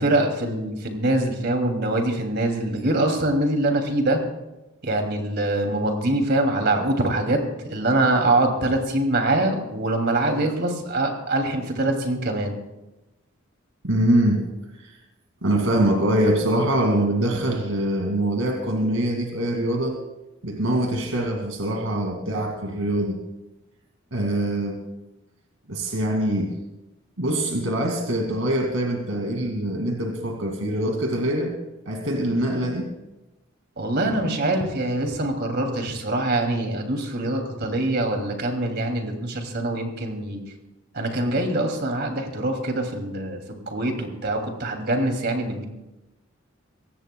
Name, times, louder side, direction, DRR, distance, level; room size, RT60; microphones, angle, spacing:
voice 1, 0.0-4.2 4.8-7.4 7.7-12.6 33.8-40.4 40.9-45.6, right 2 dB, 55° right, 4 dB, 2.7 m, -24 dB
voice 2, 13.8-14.4 14.8-15.0 15.4-20.0 20.4-23.2 24.1-24.8 25.7-26.5 27.2-31.6 31.9-32.9, right 1 dB, 85° right, 2 dB, 2.3 m, -23 dB
23.5 x 18.0 x 2.3 m, 0.98 s
head